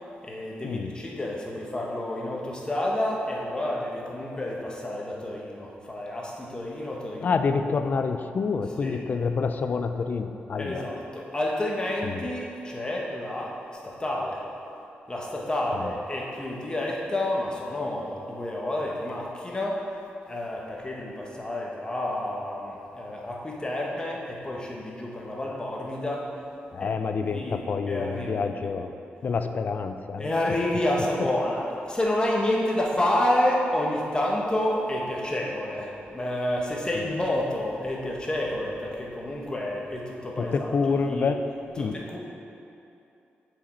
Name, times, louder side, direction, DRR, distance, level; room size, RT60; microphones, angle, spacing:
voice 1, 0.2-7.3 8.8-9.0 10.6-14.4 15.1-19.9 20.3-26.3 26.8-28.7 30.2-40.7 41.0-41.3 41.8-42.2, left 1 dB, 20° left, -2 dB, 1.0 m, -29 dB
voice 2, 7.2-10.8 12.0-12.3 26.7-28.9 29.2-30.3 40.4-41.4 41.8-42.0, left 5 dB, 50° left, 8 dB, 0.3 m, -27 dB
7.1 x 4.9 x 4.3 m, 2.7 s
wide cardioid pair, 125°, 4 cm